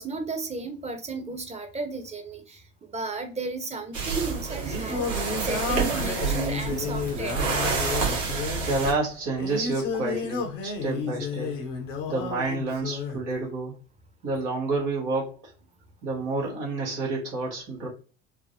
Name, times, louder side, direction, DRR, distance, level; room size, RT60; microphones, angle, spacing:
voice 1, 0.0-2.6 2.9-7.5, right 3 dB, 20° right, 6 dB, 0.9 m, -34 dB
sound 1, 3.9-8.9, right 5 dB, 55° right, 1.6 m, -28 dB
Singing, 4.3-13.2, left 5 dB, 80° left, 1.0 m, -32 dB
voice 2, 8.6-11.6 12.1-13.8 14.2-15.3 16.0-17.9, right 3 dB, 75° right, -1 dB, 1.7 m, -29 dB
4.6 x 2.0 x 2.7 m, 0.37 s
hypercardioid pair, 65°, 36 cm